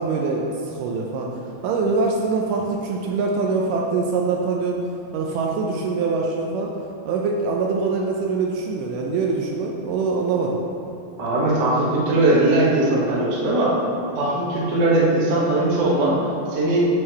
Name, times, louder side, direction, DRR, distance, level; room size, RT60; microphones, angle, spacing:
voice 1, 0.0-4.8 5.1-6.7 7.1-10.6, right 4 dB, 80° right, 0 dB, 2.0 m, -24 dB
voice 2, 11.2-13.8 14.1-16.2 16.5-16.8, right 2 dB, 55° right, -7 dB, 1.2 m, -19 dB
7.3 x 3.2 x 6.2 m, 2.7 s
omnidirectional pair, 4.0 m